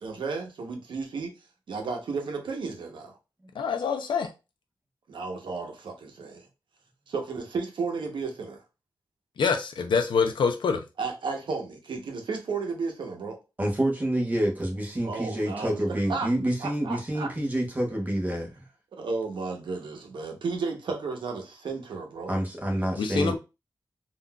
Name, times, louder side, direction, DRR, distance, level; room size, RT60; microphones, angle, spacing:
voice 1, 0.0-1.3 1.7-3.1 5.1-6.4 7.1-8.6 11.0-13.4 15.0-16.3 16.6-17.3 18.9-22.3, right 4 dB, 80° right, 0.8 m, -33 dB
voice 2, 3.6-4.3 9.4-10.8 23.0-23.4, left 5 dB, 85° left, 0.5 m, -25 dB
voice 3, 13.6-18.6 22.3-23.4, right 1 dB, 20° right, 0.8 m, -28 dB
3.7 x 2.4 x 2.2 m
wide cardioid pair, 170°, 8 cm